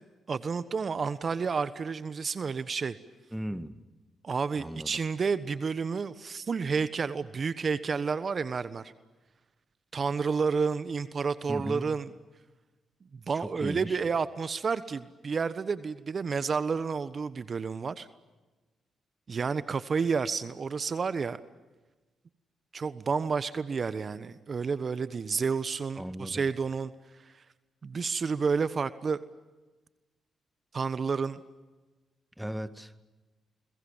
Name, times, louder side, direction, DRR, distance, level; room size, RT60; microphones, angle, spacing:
voice 1, 0.3-2.9 4.2-8.9 9.9-12.1 13.3-18.1 19.3-21.4 22.7-26.9 27.3-27.4 27.8-29.2 30.7-31.4, right 5 dB, 50° right, 1.2 m, -30 dB
voice 2, 3.3-3.8 4.6-4.9 11.5-11.9 13.3-14.0 25.9-26.5 32.4-32.9, equal, 5° right, 1.9 m, -37 dB
30.0 x 22.5 x 7.4 m
supercardioid pair, 50°, 0 cm